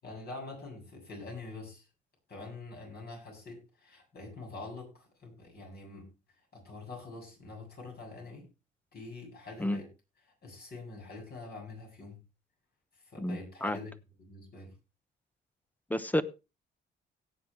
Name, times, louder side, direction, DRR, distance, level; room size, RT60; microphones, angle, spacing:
voice 1, 0.0-1.9 2.3-6.1 6.5-8.5 8.9-9.9 10.4-12.2 13.1-13.9 14.2-14.7, left 3 dB, 55° left, 1 dB, 7.7 m, -45 dB
voice 2, 13.2-13.8 15.9-16.2, left 1 dB, 10° left, 13 dB, 1.0 m, -30 dB
17.5 x 8.2 x 3.3 m, 0.28 s
cardioid pair, 90°, 20 cm